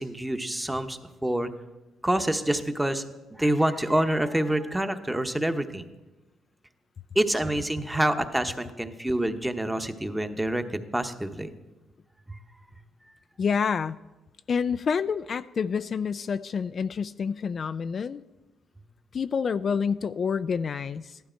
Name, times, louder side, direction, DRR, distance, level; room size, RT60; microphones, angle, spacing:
voice 1, 0.0-1.5 2.0-3.0 3.3-5.9 7.1-11.5 12.3-12.4, right 1 dB, 10° right, 7 dB, 1.0 m, -27 dB
voice 2, 13.4-14.0 14.5-18.2 19.1-21.2, left 6 dB, 45° left, 12 dB, 0.3 m, -28 dB
15.0 x 11.5 x 4.5 m, 1.1 s
cardioid pair, 90°, 0 cm